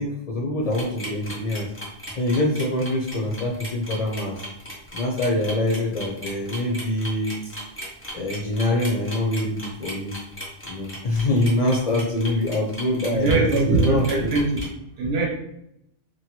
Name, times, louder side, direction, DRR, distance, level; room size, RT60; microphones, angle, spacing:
voice 1, 0.0-1.7 2.1-4.5 4.9-7.5 8.1-10.1 10.6-14.4, left 1 dB, 50° left, -2 dB, 0.5 m, -25 dB
sound 1, 0.7-14.7, equal, 15° left, 0.7 m, -37 dB
voice 2, 13.1-14.6 15.0-15.3, right 3 dB, 75° right, -1 dB, 1.0 m, -21 dB
2.8 x 2.3 x 2.9 m, 0.79 s
omnidirectional pair, 1.1 m